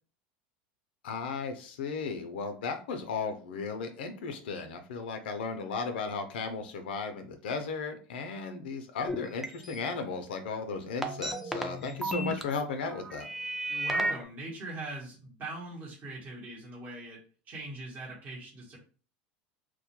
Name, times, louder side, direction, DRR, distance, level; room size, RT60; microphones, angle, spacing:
voice 1, 1.0-13.3, left 4 dB, 85° left, 7 dB, 0.4 m, -35 dB
sound 1, 9.1-9.8 11.0-12.4 12.8-14.2, right 1 dB, 5° right, 0.4 m, -33 dB
voice 2, 13.7-17.2 17.5-18.8, right 2 dB, 35° right, -5 dB, 0.9 m, -41 dB
2.2 x 2.1 x 2.8 m, 0.38 s
supercardioid pair, 100°, 5 cm